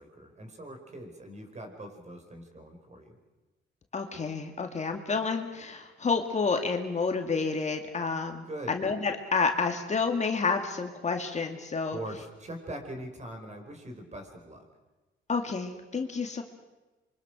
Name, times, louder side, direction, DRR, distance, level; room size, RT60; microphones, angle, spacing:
voice 1, 0.0-3.2 8.4-8.8 11.9-14.7, right 1 dB, 35° right, 5 dB, 5.4 m, -42 dB
voice 2, 3.9-12.0 15.3-16.4, left 4 dB, 35° left, 4 dB, 2.3 m, -29 dB
26.5 x 24.5 x 6.3 m, 1.1 s
cardioid pair, 90°, 20 cm